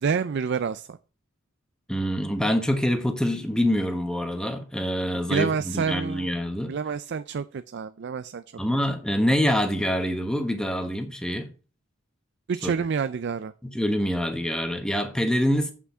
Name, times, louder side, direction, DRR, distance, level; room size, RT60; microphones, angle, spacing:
voice 1, 0.0-1.0 5.3-6.3 6.7-8.4 12.5-13.5, right 6 dB, 55° right, 0.4 m, -28 dB
voice 2, 1.9-6.7 8.6-11.5 12.6-12.7 13.6-15.7, equal, 5° left, 1.2 m, -25 dB
8.4 x 5.9 x 5.5 m
head